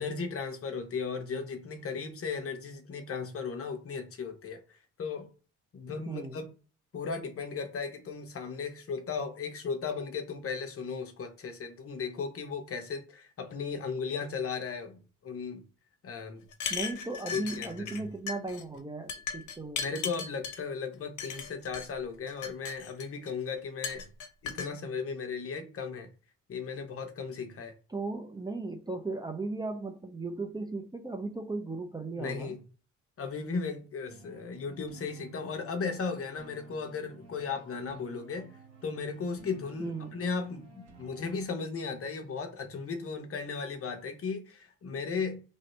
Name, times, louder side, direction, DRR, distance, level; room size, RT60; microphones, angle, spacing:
voice 1, 0.0-5.3 5.7-6.5 6.9-15.6 16.0-16.5 17.3-18.1 19.8-24.1 24.4-26.1 26.5-27.7 32.2-32.6 33.2-38.5 38.8-45.4, left 5 dB, 50° left, 0.9 m, -36 dB
voice 2, 6.1-6.4 16.7-19.8 27.9-32.5 39.8-40.1, right 3 dB, 15° right, 0.5 m, -36 dB
sound 1, 16.5-18.0 18.3-18.6 19.1-20.6 21.2-21.9 22.3-23.3 23.8-24.7, left 6 dB, 80° left, 0.8 m, -37 dB
sound 2, 34.1-41.4, right 4 dB, 55° right, 1.3 m, -55 dB
3.1 x 2.7 x 4.2 m
cardioid pair, 90°, 30 cm